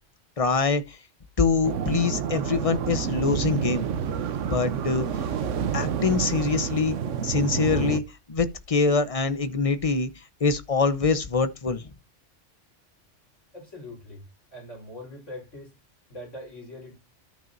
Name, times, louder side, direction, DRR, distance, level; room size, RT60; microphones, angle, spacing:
voice 1, 0.4-1.0 1.4-4.0 4.5-5.1 5.7-7.0 7.2-8.0 8.3-10.1 10.4-11.9, left 4 dB, 30° left, 0.9 m, -24 dB
sound 1, 1.6-8.0, right 7 dB, 85° right, 1.1 m, -29 dB
voice 2, 13.5-14.2 14.5-15.7 16.1-17.0, left 1 dB, 85° left, 4.4 m, -42 dB
13.5 x 6.0 x 2.6 m
omnidirectional pair, 1.2 m